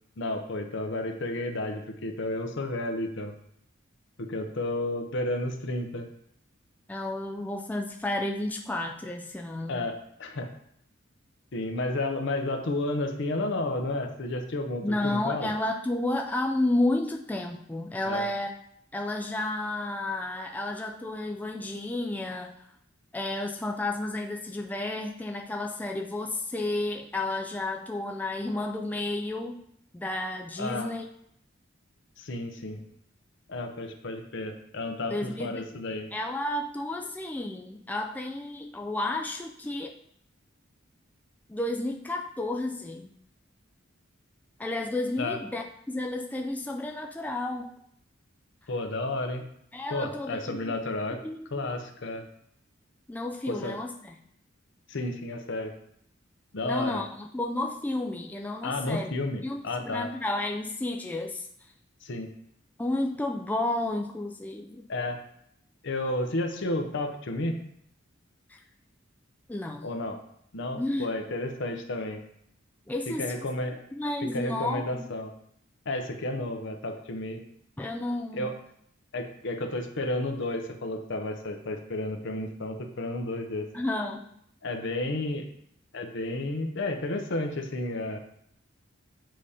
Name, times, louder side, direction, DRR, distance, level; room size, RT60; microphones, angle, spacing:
voice 1, 0.2-3.3 4.2-6.1 9.7-10.5 11.5-15.5 18.0-18.3 30.6-30.9 32.2-32.8 33.5-36.1 45.2-45.4 48.7-49.5 49.9-51.2 51.5-52.3 53.5-53.8 54.9-55.7 56.5-57.0 58.6-60.1 62.0-62.3 64.9-65.2 65.8-67.6 69.8-70.2 70.5-72.2 73.1-73.8 74.3-75.3 75.9-77.4 78.3-78.5 79.1-83.7 84.6-85.5 85.9-88.2, left 2 dB, 65° left, 5 dB, 0.7 m, -32 dB
voice 2, 6.9-9.9 14.8-18.5 18.9-22.6 23.1-29.6 29.9-31.0 35.1-35.7 36.1-39.9 41.5-43.1 44.6-47.7 49.7-50.7 51.2-51.7 53.1-54.2 56.6-59.1 59.4-61.5 62.8-64.9 68.5-68.6 69.5-69.9 70.8-71.1 72.9-73.4 73.9-75.1 77.8-78.5 83.7-84.3, left 2 dB, 10° left, 2 dB, 0.3 m, -31 dB
7.5 x 2.8 x 4.9 m, 0.71 s
head